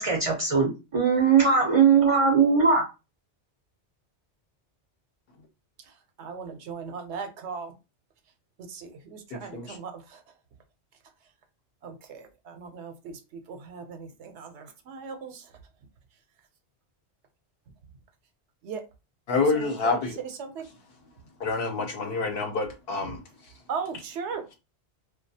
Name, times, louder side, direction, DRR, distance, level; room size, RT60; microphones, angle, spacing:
voice 1, 0.0-2.9, right 5 dB, 40° right, 0.5 m, -20 dB
voice 2, 6.2-7.7 8.7-10.2 11.8-15.5 18.6-18.8 19.5-20.0 20.4-20.6 23.1-23.2 23.7-24.5, right 5 dB, 80° right, 0.9 m, -38 dB
voice 3, 9.3-9.8 19.3-20.2 21.4-23.2, left 3 dB, 65° left, 0.8 m, -27 dB
2.4 x 2.2 x 2.6 m
omnidirectional pair, 1.2 m